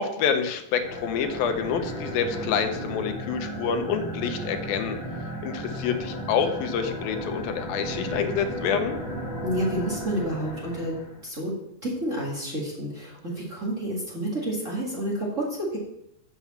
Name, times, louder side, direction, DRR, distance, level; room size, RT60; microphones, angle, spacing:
voice 1, 0.0-5.0 5.4-9.0, left 7 dB, 90° left, 7 dB, 2.7 m, -27 dB
sound 1, 0.7-11.2, equal, 35° left, 2.5 m, -34 dB
voice 2, 9.4-10.9 11.2-11.5 11.8-15.8, right 1 dB, 25° right, -5 dB, 1.8 m, -29 dB
7.2 x 7.1 x 7.1 m, 0.82 s
omnidirectional pair, 4.0 m